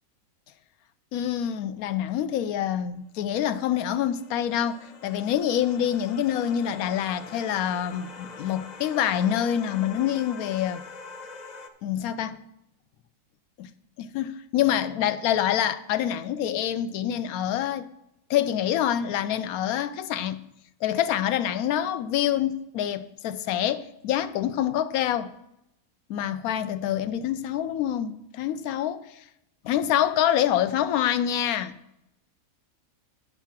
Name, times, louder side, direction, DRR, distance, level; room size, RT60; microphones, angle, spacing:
voice 1, 1.1-10.8 11.8-12.4 13.6-13.7 14.0-17.9 18.3-20.4 20.8-25.3 26.1-29.2 29.6-31.8, left 10 dB, 75° left, 1.0 m, -26 dB
sound 1, 3.3-11.7, left 4 dB, 45° left, 0.6 m, -44 dB
9.3 x 5.6 x 5.8 m
omnidirectional pair, 1.6 m